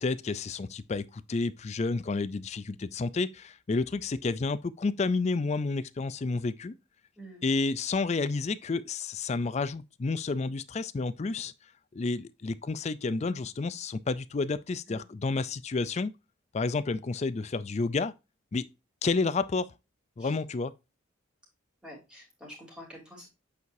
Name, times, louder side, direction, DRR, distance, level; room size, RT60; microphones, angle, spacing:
voice 1, 0.0-6.7 7.4-11.5 11.9-16.1 16.5-18.1 18.5-18.6 19.0-19.7 20.2-20.7, left 3 dB, 35° left, 0.4 m, -30 dB
voice 2, 7.2-7.5 14.9-15.0 20.2-20.3 21.8-23.3, equal, 5° right, 3.1 m, -47 dB
8.2 x 4.7 x 2.6 m
head